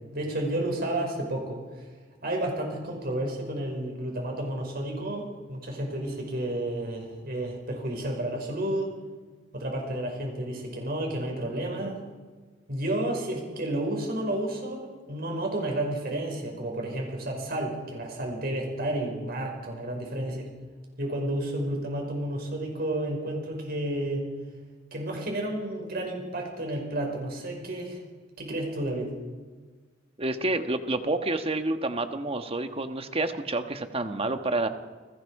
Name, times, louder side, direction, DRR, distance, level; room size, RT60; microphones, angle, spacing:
voice 1, 0.1-1.9 2.2-8.9 9.5-12.0 12.7-20.5 21.0-24.2 24.9-28.0 28.4-29.1, right 1 dB, 55° right, 1 dB, 5.4 m, -31 dB
voice 2, 30.2-34.7, right 2 dB, 30° right, 7 dB, 1.4 m, -29 dB
29.0 x 21.5 x 4.9 m, 1.4 s
head